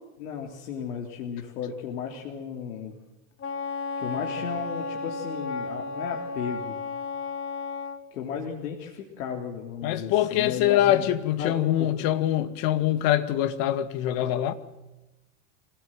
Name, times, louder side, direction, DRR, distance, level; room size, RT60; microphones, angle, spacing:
voice 1, 0.2-3.0 4.0-6.8 8.1-11.1 11.4-11.9, left 7 dB, 80° left, 3.7 m, -35 dB
Wind instrument woodwind instrument, 3.4-8.0, left 3 dB, 25° left, 1.9 m, -33 dB
voice 2, 9.8-14.5, left 12 dB, 50° left, 2.1 m, -24 dB
26.5 x 18.0 x 7.7 m
supercardioid pair, 130°, 44 cm